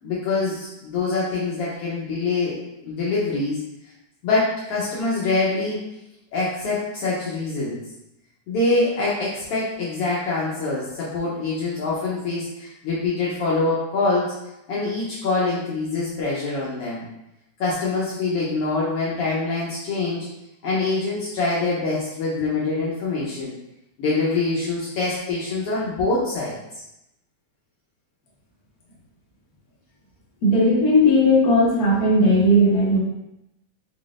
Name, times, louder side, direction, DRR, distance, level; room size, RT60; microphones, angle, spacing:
voice 1, 0.0-3.6 4.2-5.8 6.3-7.8 8.5-14.3 14.7-17.0 17.6-20.3 20.6-23.5 24.0-26.8, left 3 dB, 70° left, -7 dB, 1.5 m, -25 dB
voice 2, 30.4-33.0, left 1 dB, 50° left, -6 dB, 1.1 m, -17 dB
4.7 x 3.7 x 2.5 m, 0.86 s
omnidirectional pair, 3.3 m